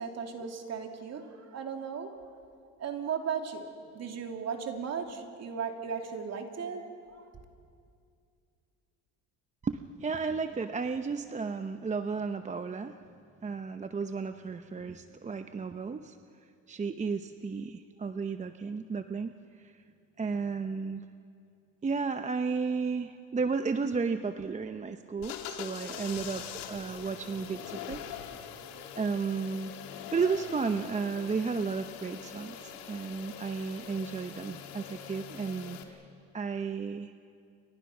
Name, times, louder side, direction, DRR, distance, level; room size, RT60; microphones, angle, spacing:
voice 1, 0.0-2.1 2.8-3.7 3.9-7.2, right 6 dB, 45° right, 3 dB, 3.0 m, -36 dB
voice 2, 9.6-13.0 13.4-16.2 16.7-19.3 19.6-19.7 20.2-21.0 21.8-28.0 28.9-36.0 36.3-37.1, right 5 dB, 20° right, 8 dB, 0.8 m, -33 dB
sound 1, 25.2-35.8, left 8 dB, 85° left, 2.4 m, -43 dB
29.5 x 24.5 x 6.1 m, 2.4 s
supercardioid pair, 100°, 35 cm